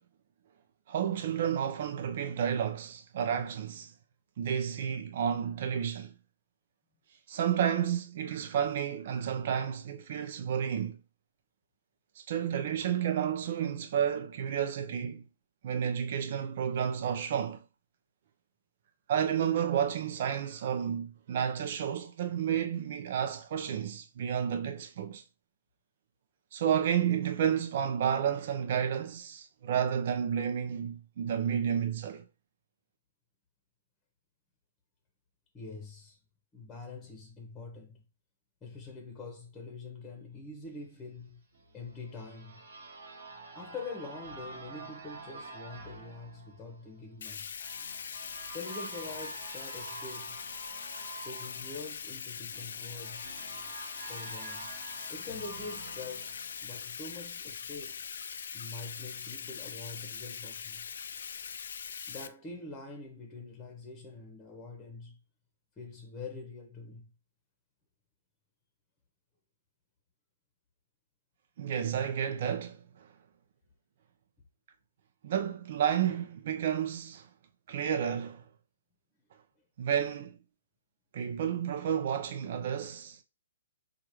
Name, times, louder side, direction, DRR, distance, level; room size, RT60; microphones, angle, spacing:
voice 1, 0.9-3.9 4.4-6.1 7.3-11.0 12.2-15.2 15.6-17.6 19.1-25.2 26.5-32.2 71.6-73.1 75.2-77.3 77.7-78.4 79.8-80.4 81.1-83.2, right 8 dB, 55° right, 0.6 m, -31 dB
voice 2, 35.5-36.2 36.5-38.0 38.6-41.4 41.7-42.5 43.5-47.5 48.5-50.4 51.2-53.3 54.1-54.7 55.1-58.0 58.5-60.9 62.1-65.2 65.8-67.1, left 3 dB, 15° left, 1.0 m, -45 dB
sound 1, 41.5-57.2, right 3 dB, 80° right, 1.3 m, -48 dB
Bathtub (filling or washing), 47.2-62.3, left 6 dB, 70° left, 0.4 m, -42 dB
4.7 x 2.4 x 3.0 m
hypercardioid pair, 135°, 0 cm